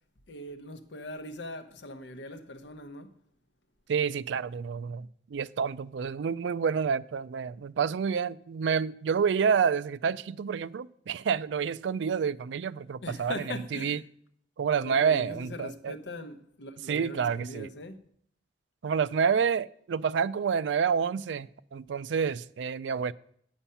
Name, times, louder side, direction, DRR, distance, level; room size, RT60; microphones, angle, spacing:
voice 1, 0.3-3.1 13.0-14.0 14.8-18.0, left 1 dB, 85° left, 0.9 m, -41 dB
voice 2, 3.9-14.0 14.6-15.9 16.9-17.7 18.8-23.1, right 6 dB, 80° right, 0.4 m, -28 dB
8.7 x 7.9 x 5.6 m
head